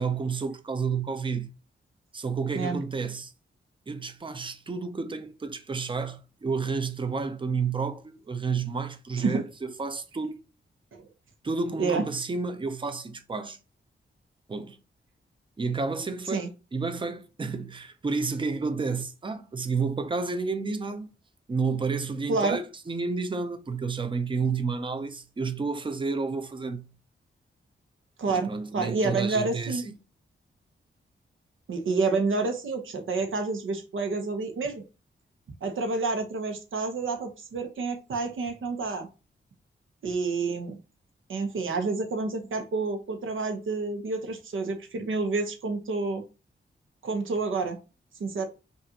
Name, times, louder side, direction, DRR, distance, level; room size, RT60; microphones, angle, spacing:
voice 1, 0.0-1.6 2.1-3.3 3.9-10.4 11.4-13.6 14.5-14.8 15.6-21.1 21.5-26.9 28.3-30.0, right 4 dB, 25° right, 0.5 m, -31 dB
voice 2, 28.2-29.8 31.7-34.8 35.6-39.1 40.0-40.8 41.3-46.2 47.0-47.8 48.2-48.5, right 3 dB, 80° right, 1.0 m, -29 dB
5.4 x 2.5 x 2.8 m
wide cardioid pair, 130°, 20 cm